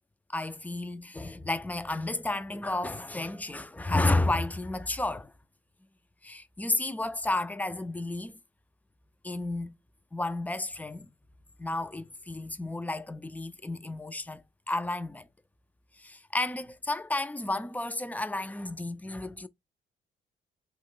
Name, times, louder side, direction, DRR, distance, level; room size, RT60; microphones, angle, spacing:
voice 1, 0.3-5.3 6.2-8.4 9.2-9.7 10.1-11.1 11.6-14.4 14.7-15.3 16.0-19.5, left 2 dB, 10° left, 0.3 m, -32 dB
2.9 x 2.1 x 3.7 m
cardioid pair, 90°, 20 cm